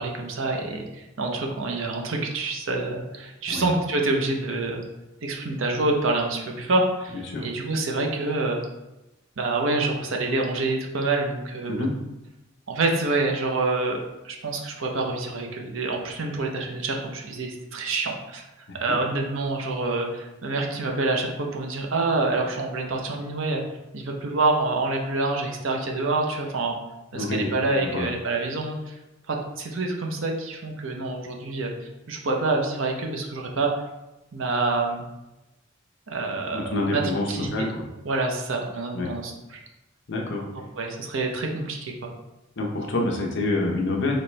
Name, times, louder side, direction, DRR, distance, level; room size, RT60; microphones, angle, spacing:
voice 1, 0.0-4.8 5.2-8.6 9.4-11.9 12.7-14.0 14.2-18.4 18.7-23.6 23.9-26.8 27.1-28.9 29.3-31.7 32.1-33.7 34.3-35.1 36.1-37.0 37.3-37.7 38.0-39.6 40.8-42.1, right 2 dB, 65° right, 1 dB, 0.7 m, -27 dB
voice 2, 7.1-7.4 11.7-11.9 18.9-19.0 27.1-27.5 27.8-28.1 36.5-37.2 37.5-37.8 38.9-39.1 40.1-40.5 42.6-44.2, left 2 dB, 55° left, 0 dB, 0.7 m, -27 dB
4.2 x 3.2 x 3.2 m, 0.99 s
head